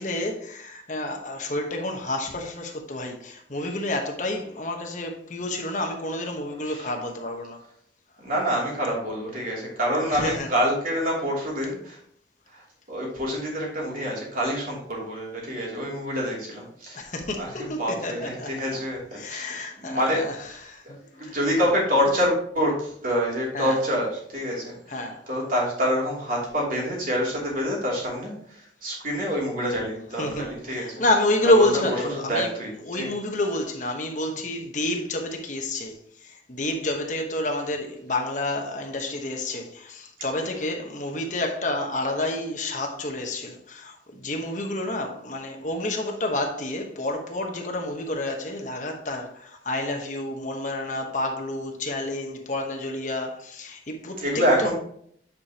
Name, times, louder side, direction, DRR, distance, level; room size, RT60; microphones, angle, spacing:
voice 1, 0.0-7.6 10.0-10.5 16.9-18.8 19.1-20.4 20.6-21.4 23.5-23.8 24.9-25.2 30.2-32.5 32.9-35.9 36.2-54.2 54.6-54.7, left 1 dB, 40° left, 1.1 m, -29 dB
voice 2, 6.5-6.9 8.2-12.0 12.5-19.5 19.8-20.2 21.1-31.0 31.5-32.0 32.3-33.1 54.2-54.7, equal, 45° right, 2.9 m, -27 dB
9.4 x 5.0 x 2.9 m
head